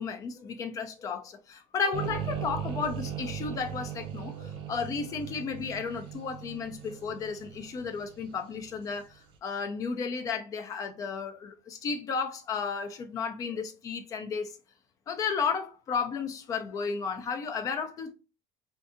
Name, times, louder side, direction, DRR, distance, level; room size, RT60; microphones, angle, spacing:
voice 1, 0.0-14.6 15.1-18.1, left 5 dB, 30° left, 0.5 m, -33 dB
sound 1, 1.9-9.0, right 9 dB, 45° right, 0.7 m, -38 dB
2.6 x 2.6 x 3.6 m
cardioid pair, 160°, 12 cm